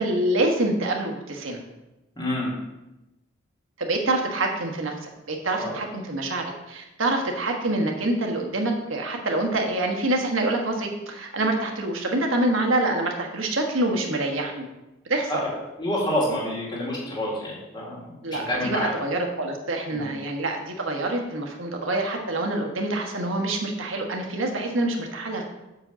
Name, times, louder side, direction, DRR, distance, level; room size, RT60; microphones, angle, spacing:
voice 1, 0.0-1.6 3.8-14.7 15.0-15.4 18.2-25.5, right 2 dB, 75° right, 2 dB, 1.3 m, -26 dB
voice 2, 2.2-2.5 5.6-5.8 15.3-15.5 15.8-18.9 19.9-20.1, left 1 dB, 20° left, -5 dB, 2.1 m, -28 dB
6.3 x 5.1 x 6.8 m, 0.98 s
head